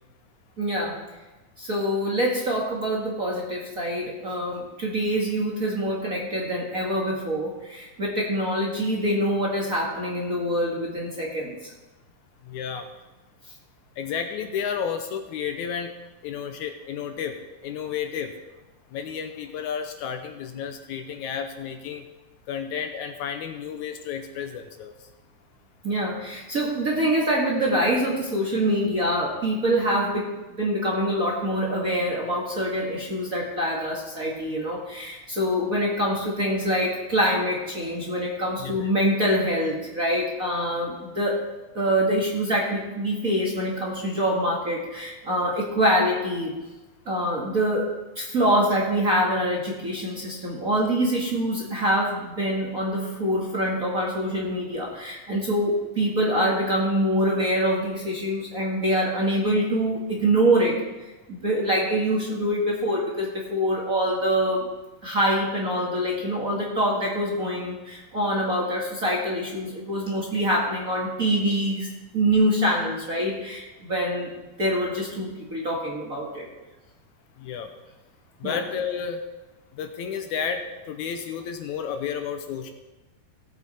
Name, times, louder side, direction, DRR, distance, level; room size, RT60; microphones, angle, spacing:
voice 1, 0.6-1.0 1.6-11.7 25.8-30.3 30.6-41.4 41.7-46.5 47.0-60.9 61.3-64.7 65.0-74.3 74.6-76.5 78.4-78.6, equal, 35° right, -3 dB, 1.5 m, -25 dB
voice 2, 12.4-12.9 14.0-15.9 16.2-17.4 17.6-18.3 18.9-22.0 22.5-24.9 38.6-38.9 77.4-77.7 78.4-79.2 79.8-82.7, left 7 dB, 75° left, 6 dB, 2.0 m, -31 dB
17.0 x 8.0 x 4.2 m, 1.1 s
omnidirectional pair, 3.7 m